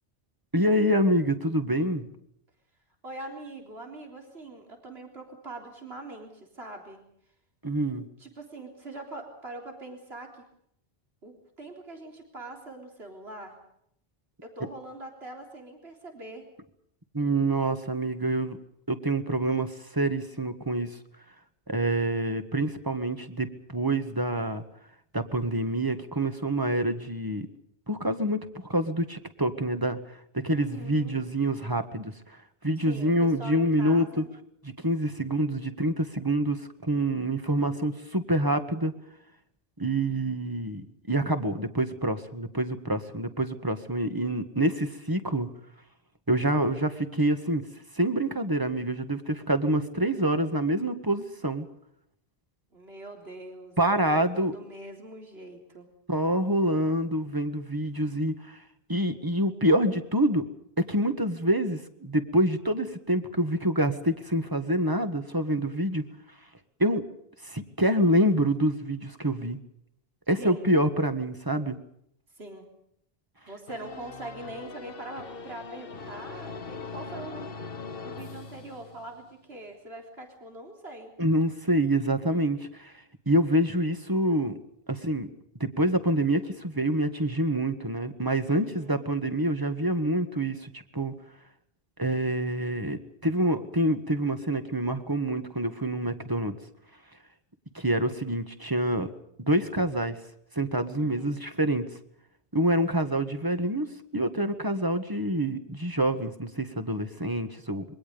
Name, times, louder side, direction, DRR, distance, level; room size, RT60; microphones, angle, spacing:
voice 1, 0.5-2.1 7.6-8.1 17.1-18.6 18.9-20.9 21.7-24.6 25.1-27.5 27.9-30.2 30.4-32.4 32.6-34.2 34.6-38.9 39.8-45.5 46.3-47.6 48.0-51.7 53.8-54.5 56.1-58.6 58.9-60.4 60.8-66.0 66.8-67.0 67.4-69.6 70.3-71.8 81.2-82.9 83.3-84.5 84.9-85.3 85.6-91.1 92.0-96.6 97.8-99.1 99.5-100.2 100.6-101.8 102.5-103.9 104.1-107.8, right 1 dB, 20° right, 8 dB, 1.8 m, -26 dB
voice 2, 3.0-7.0 8.2-10.4 11.2-13.6 14.4-16.5 30.5-31.2 32.8-34.3 52.7-55.9 70.4-70.7 72.4-72.7 73.4-77.5 78.0-81.1 88.5-89.1 101.0-101.4, right 2 dB, 85° right, 2 dB, 4.0 m, -43 dB
sound 1, 73.7-79.3, left 4 dB, 65° left, 1.4 m, -41 dB
27.0 x 23.5 x 5.3 m, 0.71 s
omnidirectional pair, 1.0 m